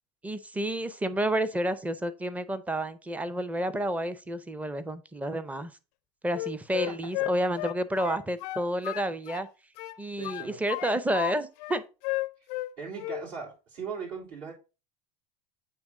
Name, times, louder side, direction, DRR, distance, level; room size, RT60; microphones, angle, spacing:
voice 1, 0.2-5.7 6.2-9.5 10.0-11.8, right 1 dB, 5° right, 0.6 m, -30 dB
Wind instrument woodwind instrument, 6.3-9.5 9.8-11.3 11.6-12.7 13.0-13.3, left 18 dB, 70° left, 0.4 m, -33 dB
voice 2, 10.2-10.6 12.8-14.5, right 6 dB, 65° right, 3.4 m, -39 dB
8.5 x 3.1 x 3.7 m
hypercardioid pair, 95°, 21 cm